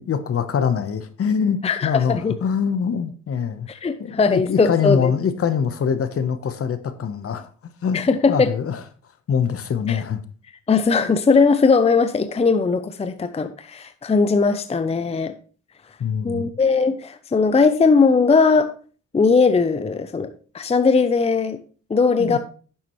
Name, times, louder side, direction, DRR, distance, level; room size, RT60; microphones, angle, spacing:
voice 1, 0.0-3.7 4.0-7.5 7.8-8.0 8.3-8.8 9.3-10.2 16.0-16.5 22.2-22.4, left 7 dB, 50° left, 1.1 m, -23 dB
voice 2, 1.6-2.3 3.7-5.1 7.9-8.5 9.9-10.0 10.7-15.4 16.2-18.7 19.1-21.6 21.9-22.4, left 4 dB, 20° left, 0.6 m, -19 dB
10.0 x 7.3 x 3.2 m
cardioid pair, 90°, 30 cm